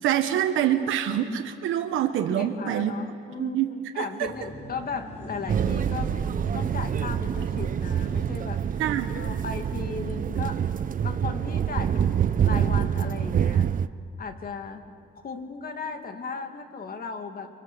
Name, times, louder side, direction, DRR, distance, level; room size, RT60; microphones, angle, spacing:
voice 1, 0.0-2.9 3.4-4.1 8.8-9.1, right 10 dB, 85° right, 5 dB, 1.2 m, -25 dB
voice 2, 2.3-3.6 3.9-6.1 6.5-8.6 9.1-10.6 11.0-13.7 14.2-14.8 15.2-17.5, left 5 dB, 50° left, 6 dB, 2.4 m, -36 dB
sound 1, 4.2-10.1, equal, 30° left, 5.3 m, -42 dB
sound 2, 5.5-13.9, right 8 dB, 45° right, 0.7 m, -26 dB
29.5 x 24.5 x 6.9 m, 2.3 s
cardioid pair, 90°, 20 cm